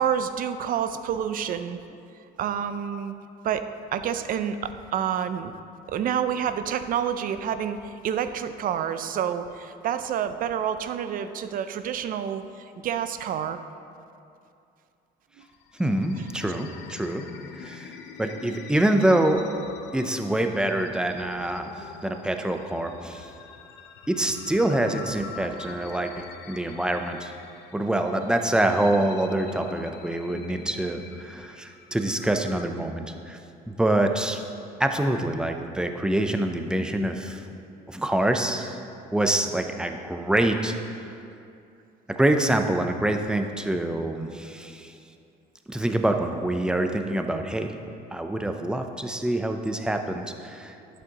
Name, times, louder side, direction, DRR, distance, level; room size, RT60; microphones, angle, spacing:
voice 1, 0.0-1.8 2.4-3.1 3.4-5.5 5.9-13.6 15.4-15.5, right 8 dB, 55° right, 10 dB, 0.5 m, -28 dB
sound 1, 15.4-32.7, left 6 dB, 85° left, 0.6 m, -44 dB
voice 2, 15.8-17.3 17.6-19.4 19.9-21.7 22.0-23.3 24.1-27.3 27.7-33.4 33.7-34.4 34.8-37.4 37.9-38.8 39.1-41.1 42.1-44.9 45.7-47.7 48.1-50.7, right 1 dB, 5° right, 5 dB, 0.6 m, -25 dB
11.0 x 8.1 x 2.9 m, 2.5 s
cardioid pair, 110°, 17 cm